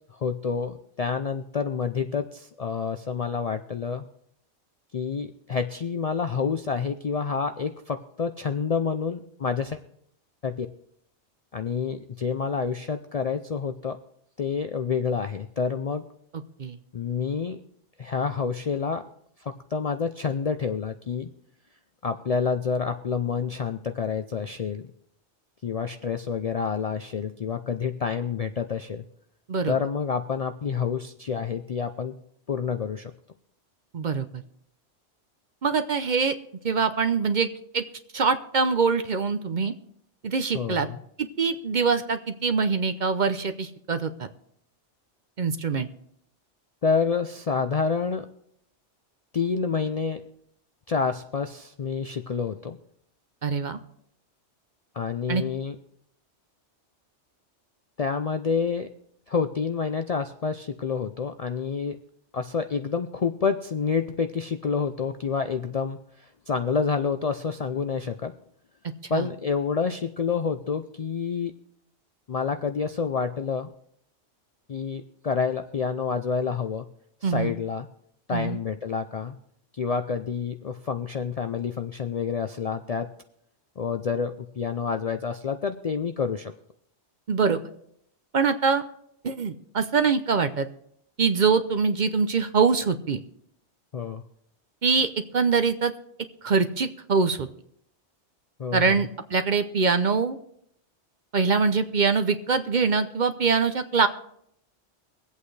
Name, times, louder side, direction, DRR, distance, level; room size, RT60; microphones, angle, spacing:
voice 1, 0.1-4.1 4.9-9.8 10.4-10.7 11.5-14.0 14.4-16.0 16.9-17.6 18.0-19.1 19.4-21.3 22.0-24.9 25.6-29.0 29.7-32.1 32.5-33.1 40.5-41.0 46.8-48.3 49.3-50.2 50.9-52.8 54.9-55.8 58.0-58.9 59.3-62.0 62.3-68.3 69.1-71.5 72.3-73.7 74.7-76.9 77.2-77.9 78.3-79.4 79.7-83.1 83.8-86.5 93.9-94.2 98.6-99.1, left 5 dB, 50° left, 7 dB, 0.4 m, -28 dB
voice 2, 33.9-34.4 35.6-36.4 36.6-37.5 37.7-37.8 38.1-39.7 40.2-40.9 41.2-44.3 45.4-45.9 53.4-53.8 55.3-55.4 69.1-69.3 77.2-77.5 78.3-78.6 87.3-87.6 88.3-88.8 89.2-90.7 91.2-93.2 94.8-95.9 96.4-97.5 98.7-100.4 101.3-104.1, right 5 dB, 50° right, 9 dB, 0.7 m, -24 dB
24.0 x 8.4 x 3.2 m, 0.72 s
omnidirectional pair, 1.2 m